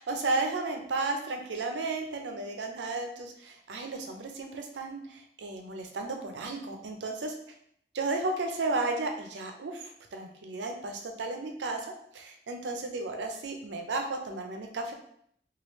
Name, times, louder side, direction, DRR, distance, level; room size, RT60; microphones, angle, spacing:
voice 1, 0.0-7.3 7.9-11.8 12.1-14.9, right 3 dB, 85° right, 4 dB, 0.5 m, -33 dB
3.2 x 2.4 x 3.0 m, 0.68 s
head